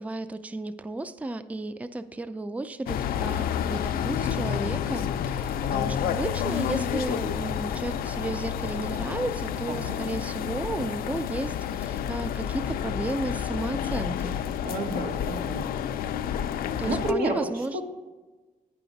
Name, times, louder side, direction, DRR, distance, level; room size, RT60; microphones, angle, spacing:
voice 1, 0.0-14.4 16.8-17.8, right 2 dB, 10° right, 12 dB, 0.4 m, -33 dB
sound 1, 2.9-17.1, left 9 dB, 80° left, 0.4 m, -30 dB
voice 2, 14.6-15.6 16.8-17.8, right 1 dB, 80° right, 2 dB, 1.4 m, -30 dB
9.2 x 5.8 x 3.9 m, 1.2 s
cardioid pair, 90°, 15 cm